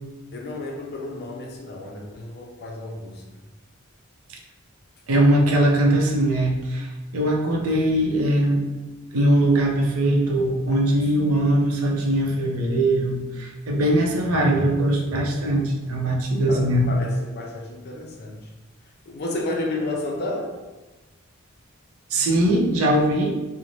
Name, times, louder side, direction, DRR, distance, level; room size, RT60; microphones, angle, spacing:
voice 1, 0.3-3.2 16.5-18.4 19.1-20.5, left 2 dB, 50° left, 0 dB, 0.5 m, -31 dB
voice 2, 5.1-8.6 9.1-17.1 22.1-23.4, right 1 dB, 80° right, -1 dB, 0.5 m, -21 dB
2.5 x 2.1 x 3.0 m, 1.1 s
head